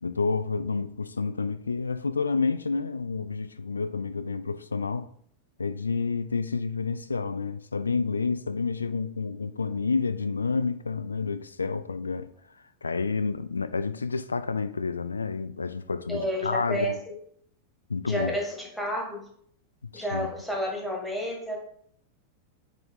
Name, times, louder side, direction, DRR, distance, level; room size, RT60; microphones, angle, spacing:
voice 1, 0.0-5.1 5.6-12.3 12.8-17.0 17.9-18.4 19.8-20.3, left 4 dB, 75° left, 0.3 m, -29 dB
voice 2, 16.1-17.1 18.0-19.3 19.9-21.6, equal, 5° left, 1.8 m, -31 dB
9.0 x 3.2 x 3.7 m
figure-of-eight pair, 90°, 0 cm